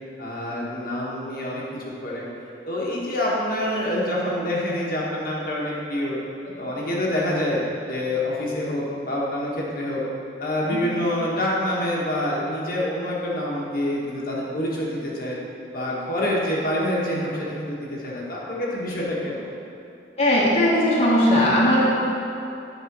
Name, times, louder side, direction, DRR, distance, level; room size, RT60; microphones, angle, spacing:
voice 1, 0.2-1.6 2.0-2.2 2.7-6.2 6.6-7.6 7.9-10.0 10.4-15.4 15.7-19.4, left 1 dB, 55° left, -5 dB, 1.3 m, -26 dB
voice 2, 20.2-21.9, left 1 dB, 35° left, -7 dB, 1.2 m, -19 dB
8.9 x 3.7 x 6.0 m, 2.7 s
head